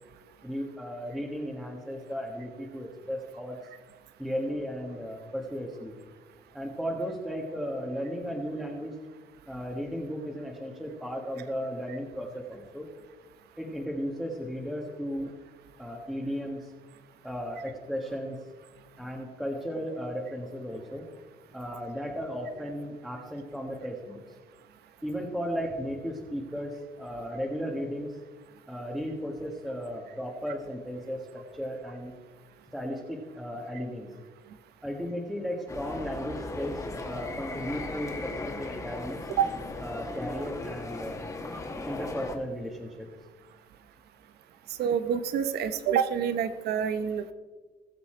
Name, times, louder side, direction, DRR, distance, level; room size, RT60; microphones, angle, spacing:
voice 1, 0.4-3.6 4.2-5.9 6.5-8.9 9.5-12.9 13.6-15.3 15.8-16.7 17.2-18.4 19.0-21.1 21.5-24.2 25.0-28.2 28.7-32.1 32.7-34.1 34.8-39.3 39.8-41.2 41.8-43.1, equal, ahead, 0 dB, 1.6 m, -35 dB
sound 1, 35.7-42.4, left 2 dB, 20° left, 1.8 m, -37 dB
voice 2, 44.8-47.3, right 8 dB, 70° right, 11 dB, 0.9 m, -27 dB
20.0 x 6.9 x 4.5 m, 1.4 s
cardioid pair, 110°, 17 cm